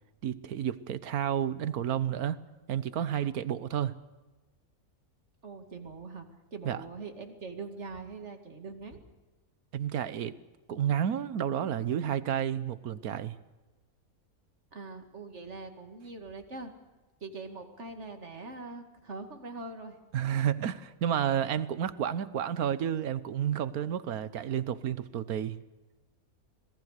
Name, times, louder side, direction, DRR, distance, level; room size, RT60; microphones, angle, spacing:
voice 1, 0.2-2.4 2.7-4.0 6.6-6.8 9.7-10.4 10.7-13.4 20.1-25.6, right 9 dB, 80° right, 15 dB, 1.4 m, -31 dB
voice 2, 5.4-6.2 6.5-9.0 14.7-16.7 17.2-20.0, right 3 dB, 50° right, 6 dB, 2.6 m, -42 dB
26.0 x 18.5 x 6.7 m, 1.2 s
omnidirectional pair, 1.5 m